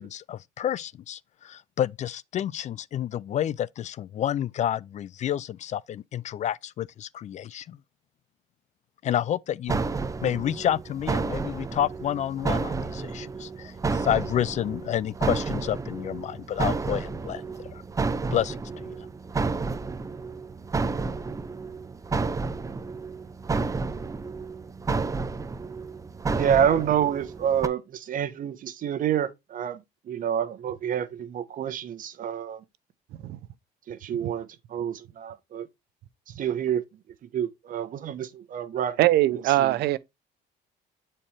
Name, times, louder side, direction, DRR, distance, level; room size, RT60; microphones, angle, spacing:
voice 1, 0.0-7.8 9.0-9.8 10.2-17.8 18.3-19.0, left 10 dB, 45° left, 0.4 m, -29 dB
sound 1, 9.7-27.7, right 4 dB, 20° right, 0.5 m, -31 dB
voice 2, 26.3-32.6 33.9-35.7 36.4-36.8 37.3-39.0, right 9 dB, 55° right, 1.0 m, -28 dB
voice 3, 39.0-40.0, right 15 dB, 75° right, 0.7 m, -22 dB
8.6 x 4.5 x 3.2 m
cardioid pair, 110°, 17 cm